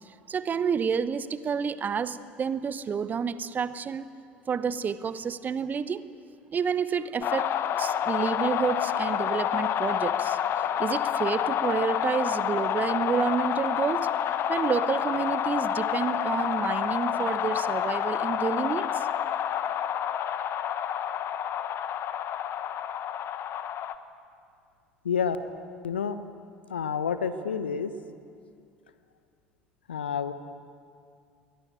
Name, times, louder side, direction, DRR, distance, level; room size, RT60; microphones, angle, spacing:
voice 1, 0.3-4.1 4.5-6.0 6.5-7.5 7.8-10.4 10.8-14.1 14.5-19.1, right 6 dB, 30° right, 15 dB, 1.0 m, -29 dB
sound 1, 7.2-24.0, left 9 dB, 45° left, 1.1 m, -28 dB
voice 2, 25.0-25.4 25.8-26.2 26.7-27.9 29.9-30.3, left 7 dB, 80° left, 12 dB, 1.1 m, -28 dB
22.0 x 18.5 x 9.3 m, 2.4 s
figure-of-eight pair, 65°, 6 cm